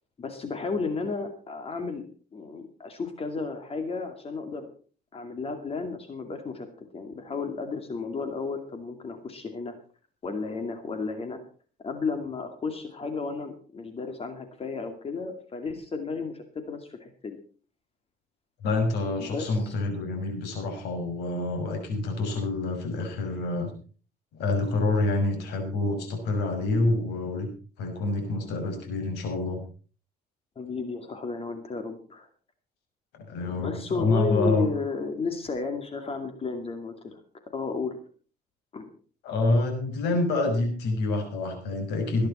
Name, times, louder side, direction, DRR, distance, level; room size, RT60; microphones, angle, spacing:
voice 1, 0.2-2.0 2.3-4.7 5.1-6.7 6.9-9.8 10.2-11.4 11.8-17.4 19.3-19.7 30.6-32.3 33.5-37.2 37.5-37.9 38.7-38.9, left 4 dB, 35° left, 7 dB, 2.4 m, -33 dB
voice 2, 18.6-23.7 24.3-27.5 27.8-29.6 33.3-34.7 39.2-42.3, left 2 dB, 85° left, 5 dB, 6.1 m, -27 dB
20.0 x 10.5 x 4.3 m, 0.39 s
cardioid pair, 110°, 17 cm